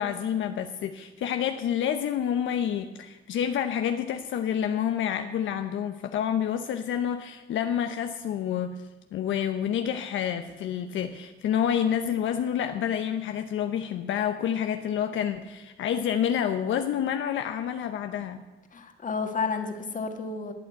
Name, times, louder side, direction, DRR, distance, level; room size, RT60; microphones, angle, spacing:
voice 1, 0.0-8.8 9.1-18.4, left 9 dB, 75° left, 7 dB, 0.8 m, -28 dB
voice 2, 18.7-20.5, left 4 dB, 40° left, 5 dB, 1.9 m, -31 dB
13.0 x 8.5 x 8.2 m, 1.1 s
cardioid pair, 90°, 20 cm